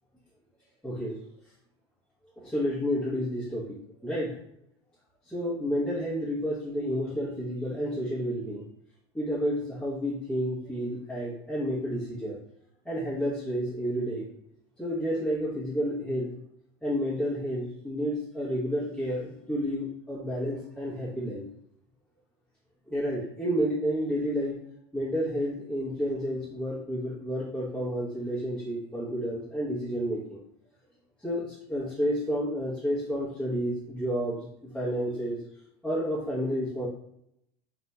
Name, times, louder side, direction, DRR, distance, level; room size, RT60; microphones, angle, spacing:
voice 1, 0.8-1.2 2.4-4.4 5.3-8.6 9.1-12.4 12.8-14.3 14.8-16.3 16.8-21.4 22.9-24.6 24.9-30.4 31.2-34.5 34.7-35.4 35.8-36.9, equal, 5° left, -10 dB, 0.9 m, -30 dB
2.9 x 2.5 x 2.2 m, 0.74 s
hypercardioid pair, 95°, 15 cm